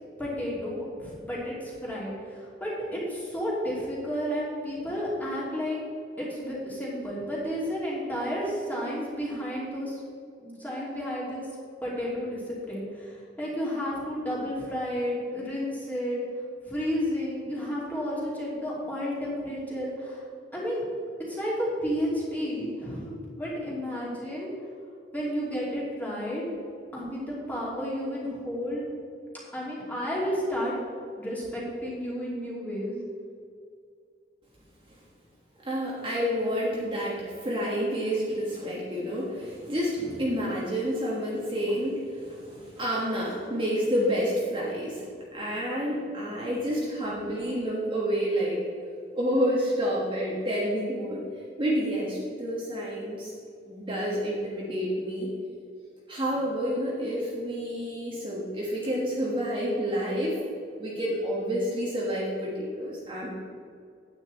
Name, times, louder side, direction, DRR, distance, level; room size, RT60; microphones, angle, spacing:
voice 1, 0.2-5.8 6.2-10.0 10.4-11.5 11.8-16.2 16.7-20.2 20.5-20.8 21.3-24.5 25.1-26.4 26.9-28.9 29.5-30.8 31.2-33.0, equal, 10° left, -6 dB, 2.8 m, -32 dB
voice 2, 35.7-45.0 45.3-48.6 49.1-51.2 51.6-53.3 53.7-55.3 56.1-60.4 60.8-63.3, equal, 30° right, -5 dB, 1.4 m, -29 dB
9.4 x 9.2 x 4.2 m, 2.4 s
head